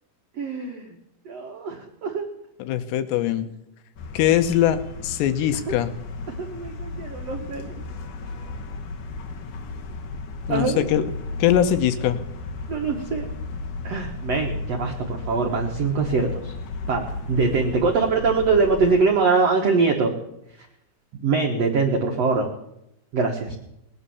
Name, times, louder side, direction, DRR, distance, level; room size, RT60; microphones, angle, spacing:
voice 1, 0.4-0.9 1.2-2.3 6.4-7.7 10.5-10.8 12.7-13.3 13.8-16.5 16.9-20.1 21.2-22.5 23.1-23.6, right 4 dB, 80° right, 2 dB, 1.4 m, -23 dB
voice 2, 2.6-3.5 4.1-5.9 10.5-11.0 11.4-12.2, left 11 dB, 80° left, 9 dB, 3.0 m, -21 dB
sound 1, 4.0-19.0, left 3 dB, 60° left, 2.4 m, -34 dB
19.5 x 9.6 x 7.1 m, 0.83 s
omnidirectional pair, 5.0 m